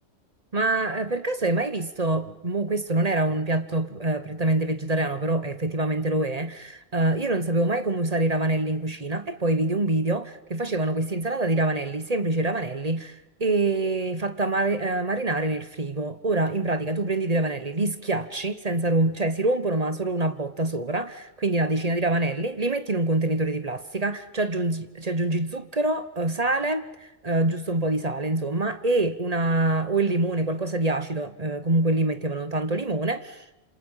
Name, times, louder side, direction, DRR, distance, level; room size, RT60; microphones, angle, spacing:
voice 1, 0.5-33.4, right 2 dB, 35° right, 1.1 m, -25 dB
27.5 x 26.5 x 5.7 m
omnidirectional pair, 1.3 m